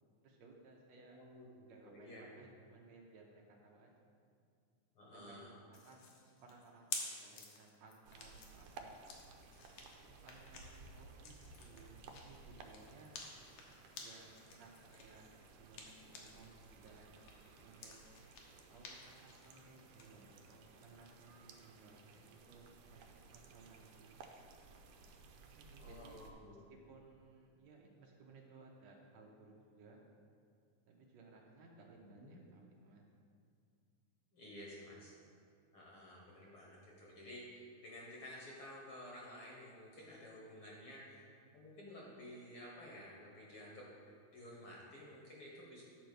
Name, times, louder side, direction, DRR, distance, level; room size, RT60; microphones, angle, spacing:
voice 1, 0.2-1.2 1.7-3.9 5.0-6.1 6.4-9.0 10.0-13.2 14.0-14.3 14.6-15.3 15.6-16.5 16.8-18.0 18.7-24.1 25.4-26.2 26.7-30.1 30.9-33.1 40.7-41.0, right 3 dB, 70° right, -1 dB, 1.9 m, -61 dB
voice 2, 1.1-2.2 5.0-5.5 25.8-26.5 32.0-32.4 34.3-35.1 35.7-41.2 41.5-43.9 44.3-45.8, left 1 dB, 55° left, -3 dB, 1.7 m, -53 dB
sound 1, 5.7-16.5 16.9-20.1, left 5 dB, 75° left, 2.4 m, -51 dB
sound 2, 8.1-26.3, right 4 dB, 85° right, 2.2 m, -58 dB
9.4 x 4.5 x 6.6 m, 2.3 s
omnidirectional pair, 3.5 m